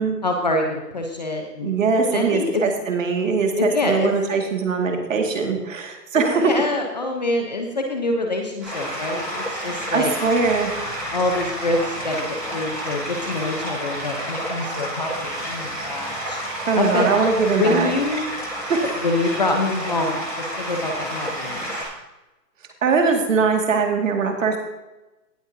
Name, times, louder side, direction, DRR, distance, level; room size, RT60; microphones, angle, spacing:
voice 1, 0.2-1.7 2.1-2.6 3.6-4.1 6.1-10.1 11.1-12.3 12.5-16.4 16.7-17.1 17.5-18.2 19.0-21.7, left 2 dB, 25° left, 2 dB, 0.8 m, -25 dB
voice 2, 1.6-6.5 9.9-10.7 16.7-17.9 18.7-18.8 22.8-24.6, right 4 dB, 50° right, 3 dB, 2.1 m, -21 dB
sound 1, 8.6-21.8, equal, 5° right, 0.8 m, -30 dB
17.5 x 8.2 x 2.7 m, 1.0 s
hypercardioid pair, 165°, 49 cm